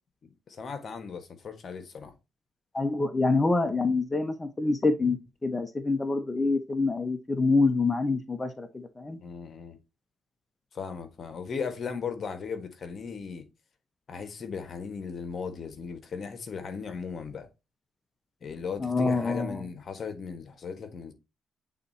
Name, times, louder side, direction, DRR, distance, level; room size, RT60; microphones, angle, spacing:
voice 1, 0.2-2.1 9.2-9.8 10.7-13.4 14.1-17.5 18.4-21.1, left 5 dB, 50° left, 1.4 m, -37 dB
voice 2, 2.7-9.2 18.8-19.6, left 3 dB, 20° left, 1.0 m, -26 dB
8.5 x 4.1 x 2.8 m
cardioid pair, 90°, 0 cm